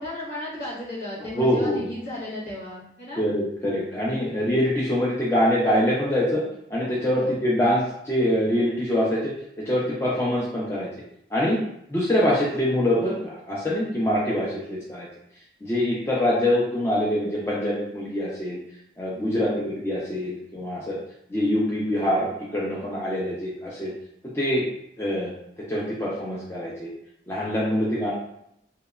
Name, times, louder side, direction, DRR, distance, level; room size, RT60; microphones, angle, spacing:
voice 1, 0.0-3.2 7.1-7.4 19.1-19.7, left 1 dB, 65° left, -9 dB, 1.4 m, -35 dB
voice 2, 1.3-1.9 3.2-6.4 6.7-9.3 9.7-10.9 11.3-11.6 11.9-15.1 15.6-18.6 19.0-21.0 21.3-23.9 24.3-24.6 25.0-25.3 25.7-26.9 27.3-28.1, left 1 dB, 15° left, -6 dB, 0.4 m, -24 dB
2.8 x 2.1 x 2.3 m, 0.76 s
head